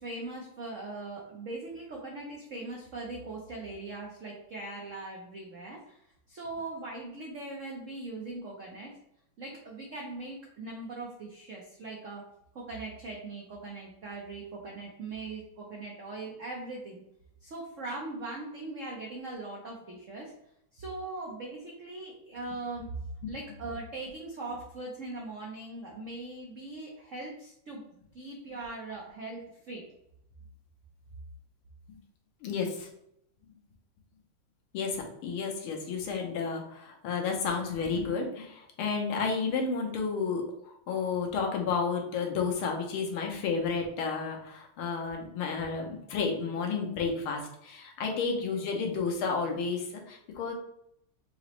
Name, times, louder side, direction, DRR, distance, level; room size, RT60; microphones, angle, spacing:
voice 1, 0.0-6.0 6.3-8.9 9.4-12.2 12.5-17.0 17.4-20.3 20.7-22.9 23.3-27.8 28.1-29.8, right 2 dB, 80° right, -2 dB, 0.6 m, -40 dB
voice 2, 32.4-32.9 34.7-50.5, left 5 dB, 75° left, 2 dB, 1.6 m, -31 dB
4.8 x 2.9 x 3.0 m, 0.74 s
omnidirectional pair, 2.4 m